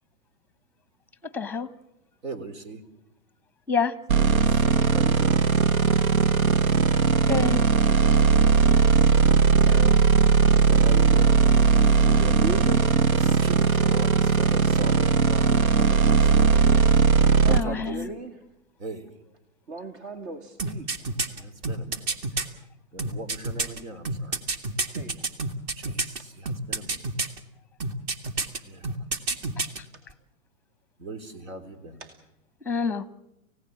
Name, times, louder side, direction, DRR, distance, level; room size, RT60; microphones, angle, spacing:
voice 1, 1.2-1.7 3.7-4.0 7.3-7.6 17.5-18.1 32.6-33.1, left 5 dB, 5° left, 15 dB, 1.0 m, -27 dB
voice 2, 2.2-2.8 4.4-5.5 10.7-11.4 13.1-16.8 17.4-18.0 18.8-19.1 21.3-22.2 22.9-24.4 25.8-27.1 28.6-29.1 31.0-32.0, right 2 dB, 70° right, 11 dB, 3.9 m, -39 dB
sound 1, 4.1-17.6, right 5 dB, 90° right, 0.9 m, -19 dB
voice 3, 9.6-10.7 11.8-13.0 17.4-18.5 19.7-21.1 24.8-25.4 29.9-30.0 32.0-32.1, right 3 dB, 50° right, 7 dB, 2.4 m, -39 dB
sound 2, 20.6-22.5 23.0-26.2 26.5-27.4 27.8-28.6 28.8-29.8 30.1-30.2, right 3 dB, 35° right, 1.9 m, -28 dB
29.5 x 16.5 x 7.6 m, 0.90 s
hypercardioid pair, 125°, 41 cm